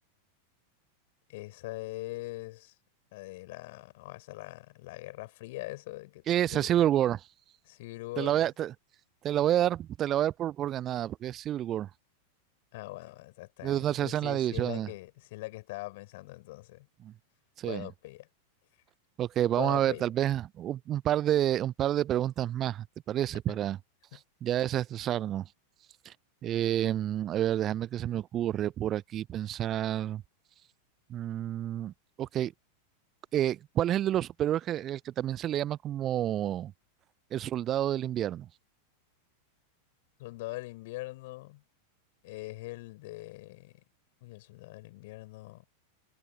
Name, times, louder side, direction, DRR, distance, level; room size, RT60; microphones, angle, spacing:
voice 1, 1.3-2.7 3.1-6.2 6.5-6.9 7.7-8.5 12.7-16.9 17.6-18.3 19.6-20.1 23.5-23.6 24.1-24.2 40.2-41.6 42.2-43.8 44.2-45.6, left 20 dB, 50° left, 7.2 m, -42 dB
voice 2, 6.3-7.3 8.2-8.7 9.2-11.9 13.6-14.9 17.0-17.1 17.6-17.9 19.2-23.8 24.4-25.5 26.0-26.1 26.4-30.2 31.1-31.9 32.2-32.5 33.3-36.7 37.3-38.5, right 11 dB, 30° right, 0.4 m, -29 dB
figure-of-eight pair, 90°, 0 cm